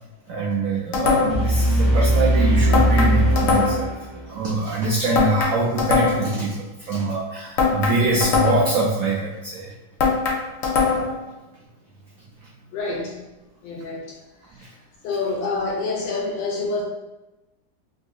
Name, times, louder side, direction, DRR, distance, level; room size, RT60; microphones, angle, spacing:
voice 1, 0.3-9.7 12.8-12.9 14.6-14.7, right 2 dB, 90° right, -4 dB, 0.7 m, -24 dB
sound 1, 0.9-1.5 2.7-3.9 5.1-6.4 7.6-8.8 10.0-11.2, left 5 dB, 70° left, 0.8 m, -21 dB
sound 2, 1.3-4.3, right 1 dB, ahead, 0.6 m, -20 dB
voice 2, 12.7-13.1 13.6-14.0 15.0-16.8, left 3 dB, 85° left, -1 dB, 1.5 m, -26 dB
3.5 x 2.7 x 2.3 m, 1.0 s
omnidirectional pair, 2.0 m